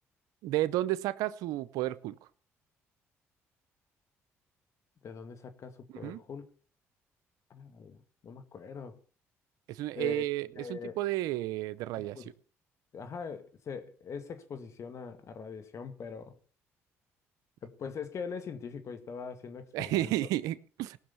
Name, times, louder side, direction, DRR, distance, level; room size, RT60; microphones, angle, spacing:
voice 1, 0.4-2.2 5.9-6.2 9.7-12.2 19.7-21.0, right 15 dB, 80° right, 0.6 m, -32 dB
voice 2, 5.0-6.4 7.5-8.0 8.2-9.0 10.0-10.3 10.6-11.0 12.2-12.3 12.9-16.4 17.6-20.1, left 6 dB, 55° left, 2.1 m, -42 dB
18.0 x 6.3 x 7.0 m
supercardioid pair, 65°, 6 cm